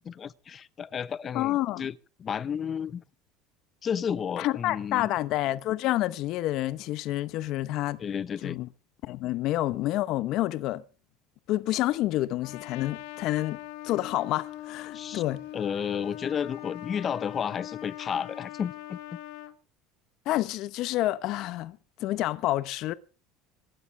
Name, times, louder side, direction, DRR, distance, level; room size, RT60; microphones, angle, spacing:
voice 1, 0.1-3.0 3.8-5.1 8.0-8.6 14.9-15.2 15.5-19.0, left 7 dB, 30° left, 1.0 m, -32 dB
voice 2, 1.3-1.9 4.4-8.0 8.4-8.7 9.0-10.8 11.5-13.6 13.8-15.4 20.3-22.9, left 15 dB, 55° left, 0.9 m, -28 dB
Trumpet, 12.4-19.5, left 15 dB, 75° left, 2.2 m, -41 dB
26.5 x 12.5 x 3.4 m
supercardioid pair, 125°, 0 cm